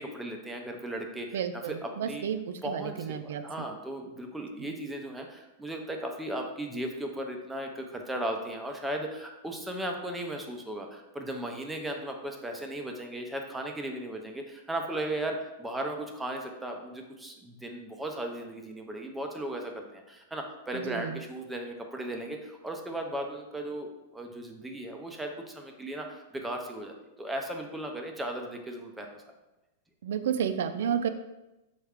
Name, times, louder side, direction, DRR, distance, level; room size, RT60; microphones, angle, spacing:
voice 1, 0.0-1.4 1.8-2.2 2.6-29.2, right 1 dB, 5° right, 2 dB, 0.4 m, -36 dB
voice 2, 1.3-3.7 4.6-4.7 20.7-21.2 30.0-31.1, right 8 dB, 70° right, 9 dB, 0.3 m, -32 dB
4.3 x 2.4 x 3.5 m, 0.99 s
supercardioid pair, 155°, 0 cm